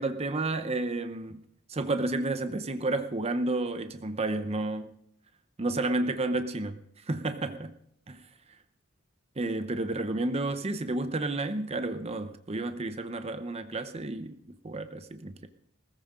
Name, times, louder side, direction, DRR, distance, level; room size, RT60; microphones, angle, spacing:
voice 1, 0.0-1.4 1.7-4.9 5.6-6.8 7.1-7.8 8.1-8.2 9.4-14.4 14.6-15.5, right 2 dB, 30° right, 0.8 m, -31 dB
20.0 x 14.5 x 3.7 m
head